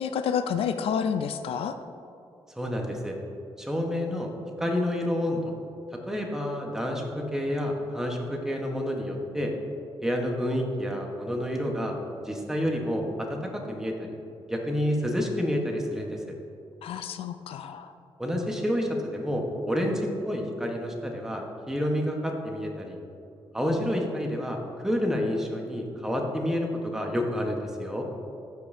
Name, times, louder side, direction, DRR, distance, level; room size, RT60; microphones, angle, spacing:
voice 1, 0.0-1.8 16.8-17.9, left 7 dB, 75° left, 9 dB, 0.4 m, -29 dB
voice 2, 2.6-3.2 3.6-4.3 4.6-5.5 5.9-9.5 10.0-12.0 12.2-14.1 14.5-16.2 18.2-23.0 23.5-28.0, equal, 5° right, 1 dB, 1.1 m, -29 dB
13.5 x 5.3 x 2.7 m, 2.5 s
cardioid pair, 115°, 10 cm